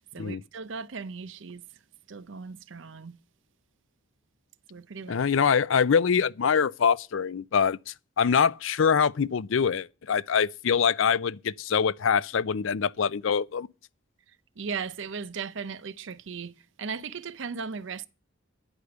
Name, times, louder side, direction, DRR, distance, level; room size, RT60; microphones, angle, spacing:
voice 1, 0.0-1.6 2.1-3.2 4.7-5.2 14.6-16.5 16.8-18.1, right 5 dB, 65° right, 0.6 m, -37 dB
voice 2, 5.1-13.7, left 6 dB, 70° left, 0.5 m, -24 dB
9.7 x 5.1 x 7.9 m
head